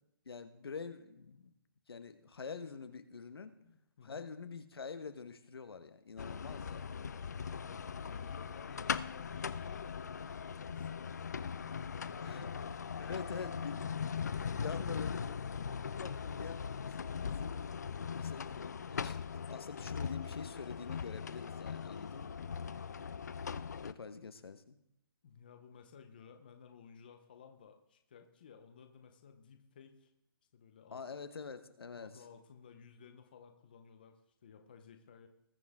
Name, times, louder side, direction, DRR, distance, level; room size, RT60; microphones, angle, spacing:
voice 1, 0.2-1.5 1.9-3.5 4.0-6.9 12.2-12.5 13.0-14.0 14.5-17.6 18.1-22.4 23.7-24.8 30.9-32.1, left 5 dB, 85° left, 9 dB, 1.3 m, -46 dB
voice 2, 1.2-1.5 3.6-4.3 7.2-7.3 7.6-11.5 11.8-13.5 15.6-16.2 22.8-23.2 25.2-30.1 30.5-31.0 31.9-35.3, left 6 dB, 25° left, 6 dB, 0.8 m, -57 dB
sound 1, 6.2-23.9, left 6 dB, 45° left, 0.4 m, -40 dB
20.5 x 7.6 x 3.6 m, 0.80 s
hypercardioid pair, 180°, 12 cm